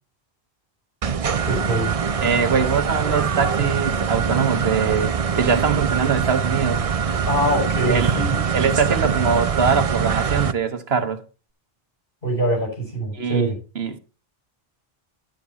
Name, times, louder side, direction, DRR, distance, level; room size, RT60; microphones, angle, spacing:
sound 1, 1.0-10.5, right 6 dB, 40° right, 0.6 m, -23 dB
voice 1, 1.4-1.9 7.3-8.4 12.2-13.5, right 1 dB, 60° left, 6.7 m, -23 dB
voice 2, 2.2-6.8 7.9-8.2 8.5-11.2 13.1-14.0, right 6 dB, 80° right, 1.4 m, -23 dB
10.0 x 9.3 x 4.1 m
omnidirectional pair, 1.0 m